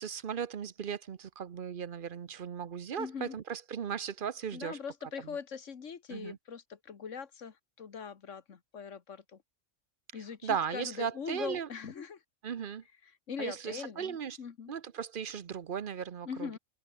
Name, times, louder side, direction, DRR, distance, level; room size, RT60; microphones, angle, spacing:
voice 1, 0.0-4.8 5.2-5.4 6.1-6.4 10.1-11.7 12.4-12.8 13.4-14.4 14.7-16.5, right 7 dB, 50° right, 0.9 m, -37 dB
voice 2, 3.0-3.4 4.5-9.4 10.1-12.2 13.3-14.7 16.3-16.6, left 6 dB, 70° left, 1.7 m, -41 dB
omnidirectional pair, 1.3 m